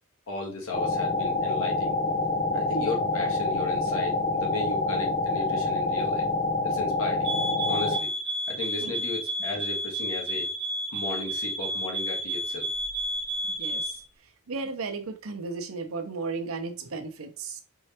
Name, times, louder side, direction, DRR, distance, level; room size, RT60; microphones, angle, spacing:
voice 1, 0.3-1.9 2.5-6.3 6.6-7.3 7.7-8.1 8.5-10.5 10.9-12.7, left 3 dB, 80° left, 1.6 m, -35 dB
sound 1, 0.7-8.0, left 2 dB, 35° left, 0.5 m, -27 dB
sound 2, 7.2-14.0, equal, 55° right, 1.2 m, -31 dB
voice 2, 13.4-14.0 14.5-17.6, right 4 dB, 90° right, 0.8 m, -35 dB
4.6 x 3.2 x 2.9 m
head